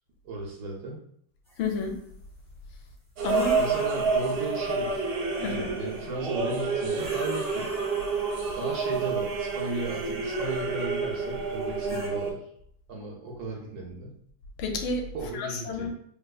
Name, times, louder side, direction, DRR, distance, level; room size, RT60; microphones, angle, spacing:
voice 1, 0.2-1.0 3.5-5.1 5.4-7.7 8.6-12.4 12.9-14.2 15.1-15.9, right 3 dB, 70° right, -1 dB, 0.9 m, -35 dB
sound 1, 1.5-2.0 3.2-6.1 6.9-10.8 11.6-12.1, left 1 dB, ahead, 0.9 m, -45 dB
voice 2, 1.6-2.0 3.2-3.6 5.4-5.7 14.6-15.1 15.3-15.9, left 3 dB, 80° left, 4 dB, 1.3 m, -30 dB
sound 2, 3.2-12.3, right 4 dB, 90° right, 1.5 m, -29 dB
3.3 x 2.7 x 2.3 m, 0.66 s
omnidirectional pair, 2.2 m